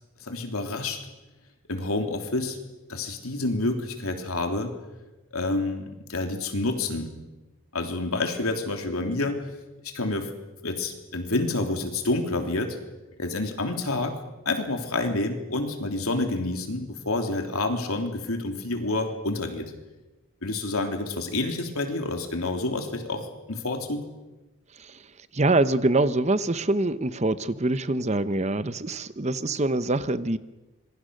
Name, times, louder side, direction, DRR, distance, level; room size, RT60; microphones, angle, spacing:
voice 1, 0.2-1.0 1.7-2.6 2.9-4.8 5.3-7.1 7.7-9.5 9.8-10.3 10.6-12.8 13.2-14.2 14.4-19.7 20.4-24.0, left 2 dB, 85° left, 4 dB, 3.3 m, -28 dB
voice 2, 25.3-30.4, right 2 dB, 30° right, 13 dB, 0.8 m, -24 dB
26.0 x 22.0 x 6.5 m, 1.1 s
head